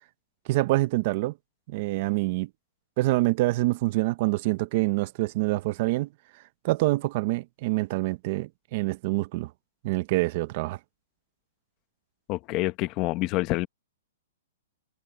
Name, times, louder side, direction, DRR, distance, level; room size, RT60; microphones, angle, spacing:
voice 1, 0.5-1.3 1.7-2.5 3.0-6.1 6.6-9.5 9.8-10.8, right 20 dB, 35° right, 0.6 m, -26 dB
voice 2, 12.3-13.7, left 19 dB, 25° left, 0.8 m, -27 dB
hypercardioid pair, 170°, 0 cm